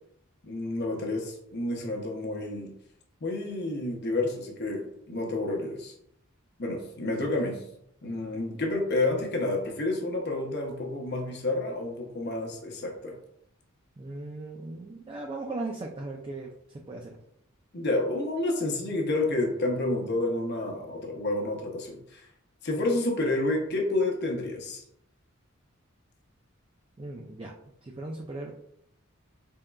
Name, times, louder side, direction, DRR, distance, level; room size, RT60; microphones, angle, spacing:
voice 1, 0.4-2.7 3.2-5.9 6.6-7.6 8.0-13.2 17.7-22.3 22.6-24.8, left 2 dB, 50° left, 2 dB, 0.8 m, -29 dB
voice 2, 14.0-17.2 27.0-27.5 27.8-28.5, right 2 dB, 25° right, 0 dB, 0.3 m, -38 dB
4.2 x 3.6 x 2.2 m, 0.75 s
head